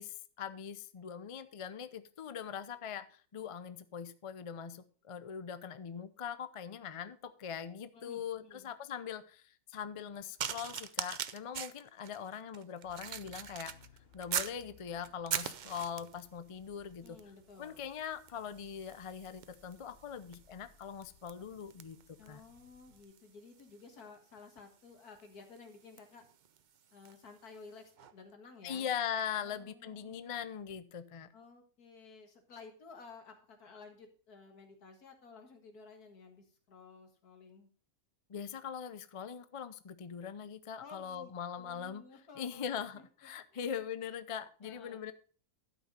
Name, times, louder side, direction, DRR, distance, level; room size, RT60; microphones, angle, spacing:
voice 1, 0.0-13.7 14.1-17.2 17.6-22.0 22.3-22.4 28.6-31.3 38.3-42.0 42.4-45.1, left 8 dB, 60° left, 13 dB, 0.3 m, -41 dB
voice 2, 7.9-8.7 17.0-17.8 22.2-26.2 26.9-28.9 29.4-30.4 31.3-37.7 40.8-42.7 42.9-43.0 43.5-43.7 44.6-45.0, left 4 dB, 90° left, 4 dB, 2.3 m, -54 dB
sound 1, 10.4-14.6 15.0-16.3 17.1-17.3 17.6-27.3 28.0-28.1, right 8 dB, 90° right, 0.4 m, -43 dB
sound 2, 12.8-23.0, left 6 dB, 45° left, 1.3 m, -64 dB
12.0 x 5.5 x 5.3 m, 0.41 s
omnidirectional pair, 1.6 m